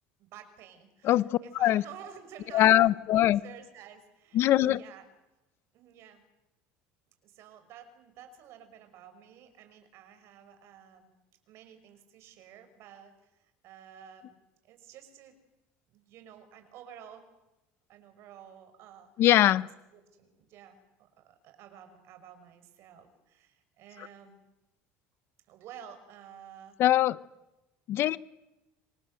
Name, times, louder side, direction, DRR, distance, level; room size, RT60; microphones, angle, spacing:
voice 1, 0.2-5.0 5.7-6.2 7.2-11.1 11.5-14.3 14.6-15.4 15.9-17.3 17.9-19.1 19.9-24.4 25.5-26.8, right 9 dB, 60° right, 8 dB, 5.9 m, -51 dB
voice 2, 1.0-1.8 2.5-3.4 4.3-4.8 19.2-19.7 26.8-27.2 27.9-28.2, left 13 dB, 50° left, 18 dB, 0.9 m, -22 dB
27.0 x 25.5 x 7.8 m, 0.96 s
cardioid pair, 130°, 5 cm